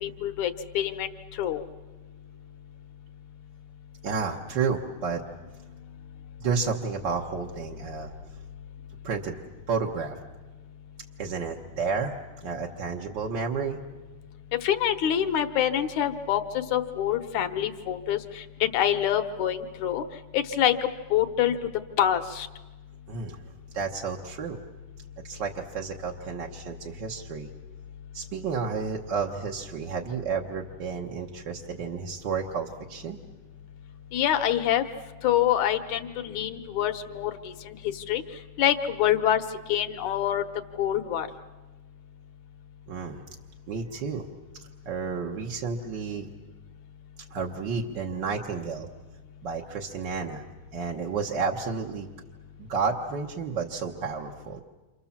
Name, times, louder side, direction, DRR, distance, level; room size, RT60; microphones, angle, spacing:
voice 1, 0.0-1.6 14.6-20.0 20.3-21.6 22.0-22.5 34.1-34.8 35.2-38.2 38.6-39.4 39.7-40.4 40.8-41.3, left 10 dB, 70° left, 8 dB, 2.4 m, -26 dB
voice 2, 4.0-5.2 6.4-8.1 9.0-9.4 9.7-10.2 11.2-13.8 23.1-23.4 23.7-24.6 25.2-27.5 28.1-33.2 42.9-43.2 43.7-44.3 44.8-46.3 47.3-48.9 49.4-50.4 50.7-52.1 52.6-54.6, right 5 dB, 55° right, 0 dB, 1.3 m, -31 dB
29.0 x 27.0 x 7.3 m, 1.2 s
omnidirectional pair, 3.6 m